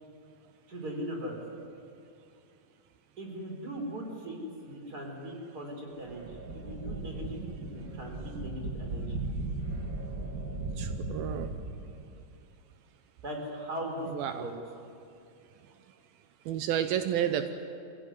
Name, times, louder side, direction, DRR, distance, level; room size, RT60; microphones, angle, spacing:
voice 1, 0.7-1.4 3.2-9.2 13.2-14.5, equal, 25° right, 1 dB, 4.2 m, -39 dB
sound 1, 6.0-12.2, right 2 dB, 40° right, 1.2 m, -37 dB
voice 2, 10.8-11.5 14.1-14.4 16.5-17.5, right 10 dB, 80° right, 8 dB, 2.6 m, -31 dB
26.0 x 16.0 x 9.7 m, 2.6 s
omnidirectional pair, 4.3 m